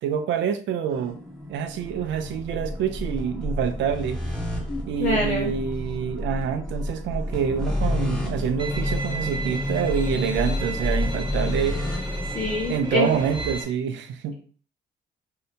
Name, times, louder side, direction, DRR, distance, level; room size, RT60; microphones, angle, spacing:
voice 1, 0.0-1.2 1.5-4.2 4.9-11.8 12.7-14.3, right 8 dB, 70° right, 9 dB, 0.4 m, -26 dB
sound 1, 0.9-13.6, left 1 dB, 5° left, 0.8 m, -30 dB
voice 2, 4.7-5.5 12.3-13.1, left 2 dB, 35° left, -6 dB, 0.9 m, -26 dB
Bowed string instrument, 8.6-13.6, right 3 dB, 25° right, 0.6 m, -35 dB
2.7 x 2.0 x 2.7 m, 0.42 s
cardioid pair, 90°, 20 cm